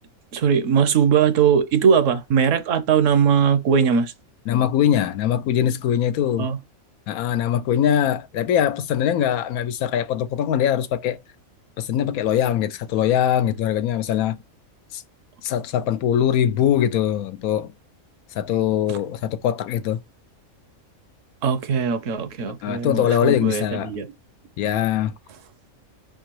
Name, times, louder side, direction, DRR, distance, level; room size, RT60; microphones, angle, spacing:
voice 1, 0.3-4.1 6.4-6.6 21.4-24.1, right 7 dB, 70° right, 1.0 m, -20 dB
voice 2, 4.5-6.5 7.1-11.2 11.8-14.4 14.9-15.0 15.4-17.7 18.3-20.0 22.6-23.9 24.6-25.1, left 10 dB, 85° left, 1.1 m, -22 dB
4.6 x 3.7 x 3.0 m
omnidirectional pair, 1.5 m